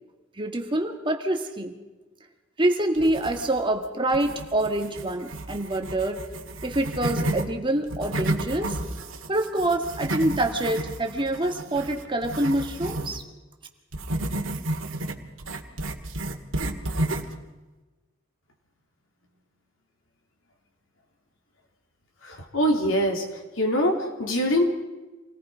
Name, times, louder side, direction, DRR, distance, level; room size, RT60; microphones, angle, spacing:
voice 1, 0.4-1.7 2.6-6.2 6.6-8.8 9.3-13.2, right 1 dB, 25° right, 4 dB, 1.8 m, -26 dB
sound 1, 2.9-3.8 4.1-7.5 7.8-13.2 13.9-17.4, right 1 dB, 80° right, 2.0 m, -31 dB
voice 2, 22.3-23.2 23.6-24.6, equal, 80° left, 2 dB, 3.5 m, -23 dB
27.5 x 18.5 x 5.1 m, 1.2 s
head